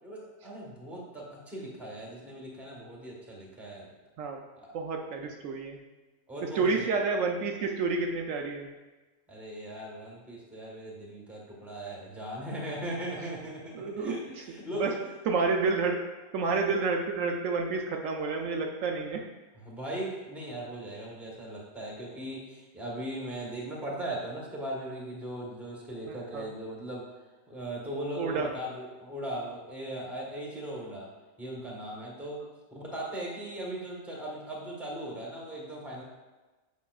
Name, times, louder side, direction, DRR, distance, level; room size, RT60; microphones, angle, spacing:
voice 1, 0.0-3.9 4.6-4.7 5.2-5.3 6.3-6.9 9.3-15.0 19.5-27.0 27.5-31.1 31.4-32.4 32.7-36.0, right 1 dB, ahead, -3 dB, 1.1 m, -38 dB
voice 2, 4.7-5.8 6.4-8.7 13.7-14.2 14.8-14.9 15.3-16.1 16.3-19.3 26.1-26.5 28.2-28.5, right 4 dB, 75° right, 2 dB, 0.9 m, -29 dB
8.3 x 5.4 x 2.3 m, 1.2 s
omnidirectional pair, 1.4 m